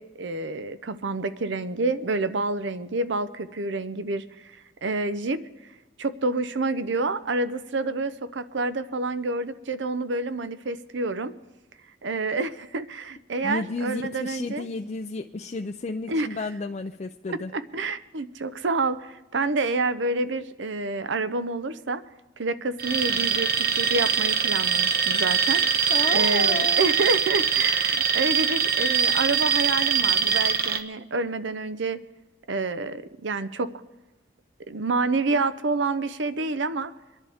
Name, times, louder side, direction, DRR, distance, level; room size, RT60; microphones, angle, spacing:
voice 1, 0.0-5.4 6.0-11.3 12.0-14.6 16.1-16.3 17.3-22.0 22.4-32.0 32.5-33.7 34.7-36.9, right 3 dB, 70° right, 12 dB, 0.7 m, -28 dB
voice 2, 13.4-17.5 25.9-26.8, left 3 dB, 35° left, 4 dB, 0.5 m, -32 dB
Alarm, 22.8-30.8, right 6 dB, 50° right, 1.0 m, -23 dB
25.0 x 11.0 x 3.5 m, 1.1 s
head